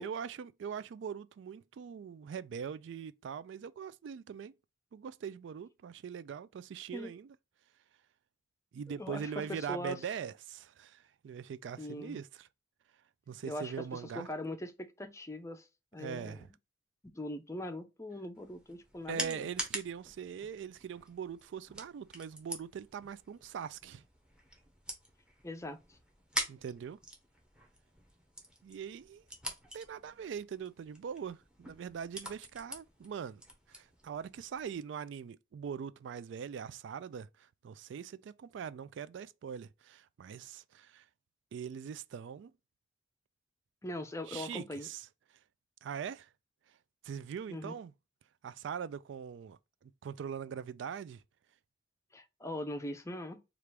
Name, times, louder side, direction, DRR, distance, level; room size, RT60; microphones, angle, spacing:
voice 1, 0.0-4.5 4.9-7.4 8.7-12.5 13.3-14.3 16.0-16.5 19.1-24.0 26.5-27.0 28.6-29.2 29.7-33.4 33.7-41.0 41.5-42.5 44.3-45.1 45.8-46.3 47.0-47.9 48.4-51.2, right 7 dB, 70° right, 0.3 m, -42 dB
voice 2, 8.9-10.0 11.8-12.2 13.4-15.6 15.9-16.5 17.0-19.5 25.4-26.0 43.8-44.9 47.5-47.8 52.1-53.4, left 1 dB, 15° left, 0.6 m, -41 dB
sound 1, 18.3-34.7, equal, 5° right, 0.9 m, -45 dB
4.5 x 2.5 x 3.3 m
head